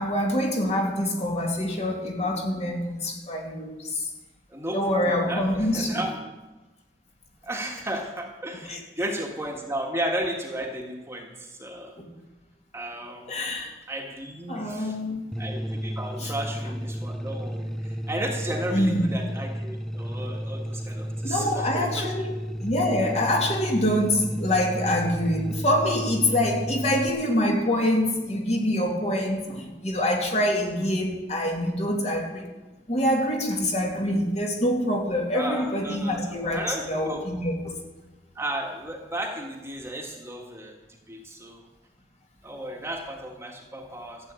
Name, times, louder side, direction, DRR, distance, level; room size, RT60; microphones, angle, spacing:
voice 1, 0.0-4.1 4.7-6.0 8.6-8.8 12.0-12.1 13.3-13.7 14.5-15.2 16.2-16.3 18.7-19.1 21.2-32.5 32.9-37.7, left 1 dB, 40° left, 1 dB, 2.6 m, -25 dB
voice 2, 4.5-6.1 7.4-11.9 12.7-13.3 13.9-14.9 15.4-22.1 35.3-37.2 38.3-40.8 41.1-41.6 42.4-44.3, right 1 dB, 15° right, 1 dB, 1.6 m, -34 dB
sound 1, 15.3-27.1, equal, 5° left, 0.5 m, -33 dB
14.0 x 8.3 x 8.8 m, 1.1 s
head